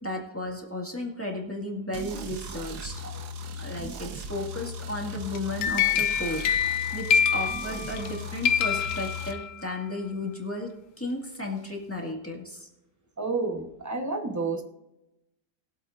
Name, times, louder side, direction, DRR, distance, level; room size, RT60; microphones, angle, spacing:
voice 1, 0.0-2.9 3.6-6.4 6.9-10.7 11.0-12.7, left 1 dB, 10° left, 1.9 m, -34 dB
sound 1, 1.9-9.3, left 1 dB, 80° right, 1.5 m, -38 dB
sound 2, 5.3-8.1 8.4-9.7, left 8 dB, 65° left, 0.9 m, -26 dB
voice 2, 13.2-14.6, right 3 dB, 15° right, 0.9 m, -30 dB
21.5 x 7.9 x 2.6 m
omnidirectional pair, 1.7 m